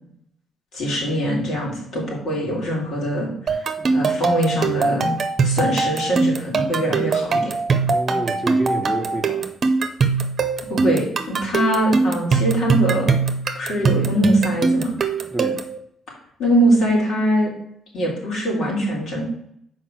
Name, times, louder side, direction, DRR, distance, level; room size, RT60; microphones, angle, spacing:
voice 1, 0.7-3.3 3.9-5.1 5.4-7.5 10.7-13.1 13.5-14.9 16.4-17.5 17.9-19.3, right 1 dB, 70° left, -3 dB, 3.4 m, -22 dB
sound 1, 3.5-15.8, right 4 dB, 45° right, 0.9 m, -21 dB
voice 2, 7.9-9.5 15.2-15.6, right 1 dB, ahead, 3 dB, 1.6 m, -28 dB
6.0 x 4.9 x 6.3 m, 0.70 s
cardioid pair, 90°, 0 cm